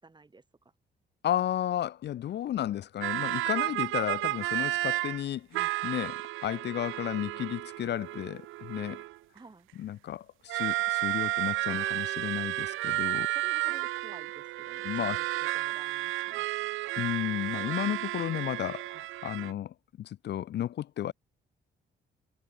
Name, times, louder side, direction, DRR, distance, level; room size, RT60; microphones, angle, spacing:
voice 1, 0.0-0.4 9.3-9.7 12.9-16.7, right 3 dB, 20° right, 5.2 m, -53 dB
voice 2, 1.2-9.0 9.8-13.3 14.8-15.2 17.0-21.1, left 11 dB, 60° left, 0.6 m, -33 dB
sound 1, 3.0-5.2 5.5-9.4 10.5-19.5, right 17 dB, 85° right, 0.6 m, -32 dB
cardioid pair, 90°, 20 cm